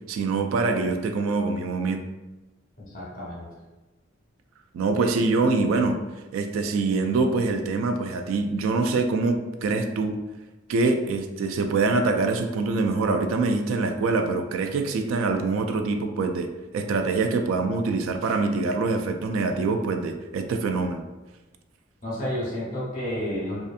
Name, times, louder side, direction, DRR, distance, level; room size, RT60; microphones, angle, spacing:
voice 1, 0.1-2.0 4.7-6.0 6.3-10.2 10.7-16.5 16.7-21.0, right 3 dB, 85° right, 7 dB, 0.3 m, -24 dB
voice 2, 2.8-3.5 22.0-23.6, equal, 40° left, -6 dB, 0.8 m, -31 dB
2.6 x 2.4 x 2.4 m, 1.1 s
head